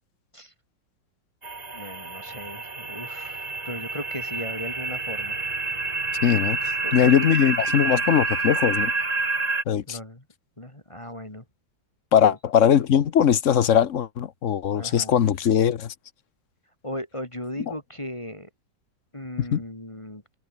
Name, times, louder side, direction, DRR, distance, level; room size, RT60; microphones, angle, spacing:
sound 1, 1.4-9.6, right 3 dB, 20° right, 1.6 m, -28 dB
voice 1, 1.7-5.4 6.8-7.3 9.9-10.2 10.6-11.4 12.1-12.4 14.7-15.2 16.8-18.5 19.1-20.2, left 1 dB, 15° left, 2.6 m, -37 dB
voice 2, 6.2-8.9 9.7-10.0 12.1-15.9 19.5-19.6, left 9 dB, 50° left, 1.1 m, -20 dB
omnidirectional pair, 2.0 m